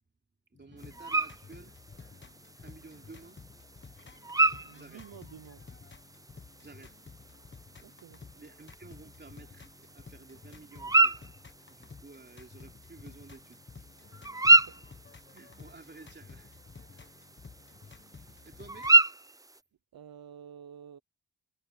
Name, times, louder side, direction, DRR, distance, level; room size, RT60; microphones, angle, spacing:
sound 1, 0.5-19.0, left 5 dB, 30° left, 1.3 m, -52 dB
voice 1, 0.6-1.8 2.6-3.4 4.7-5.1 6.6-7.0 8.4-11.2 11.7-13.9 15.3-16.6 17.8-19.0, right 3 dB, 25° right, 3.2 m, -52 dB
sound 2, 0.8-19.6, right 2 dB, 10° right, 0.5 m, -31 dB
voice 2, 4.6-5.6 7.8-8.2 14.5-14.7 19.9-21.0, right 8 dB, 65° right, 0.8 m, -49 dB
wide cardioid pair, 140°, 38 cm